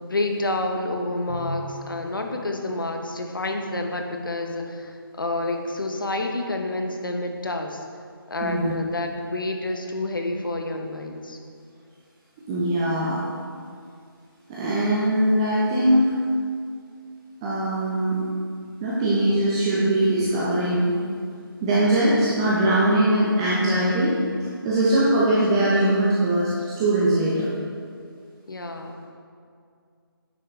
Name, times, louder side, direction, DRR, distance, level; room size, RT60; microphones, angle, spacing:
voice 1, 0.0-7.8 8.3-11.4 28.5-29.0, left 2 dB, 60° left, 4 dB, 1.1 m, -29 dB
Bowed string instrument, 1.3-3.9, left 1 dB, 35° left, 2.0 m, -39 dB
voice 2, 8.4-8.7 12.5-13.2 14.5-16.1 17.4-18.2 18.8-21.0 21.6-26.5 26.8-27.5, right 1 dB, 15° right, -8 dB, 0.7 m, -21 dB
9.6 x 7.6 x 3.3 m, 2.2 s
figure-of-eight pair, 155°, 12 cm